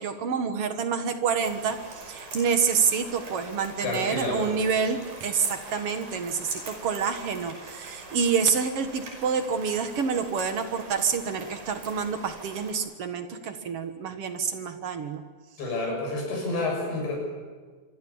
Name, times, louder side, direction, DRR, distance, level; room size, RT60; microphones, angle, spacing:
voice 1, 0.0-1.8 2.0-15.2, right 6 dB, 85° right, 7 dB, 1.3 m, -27 dB
sound 1, 1.4-12.7, right 2 dB, 55° right, 7.3 m, -43 dB
voice 2, 3.8-4.5 15.6-17.2, left 2 dB, 75° left, 0 dB, 9.4 m, -29 dB
25.5 x 25.5 x 7.2 m, 1.5 s
omnidirectional pair, 5.1 m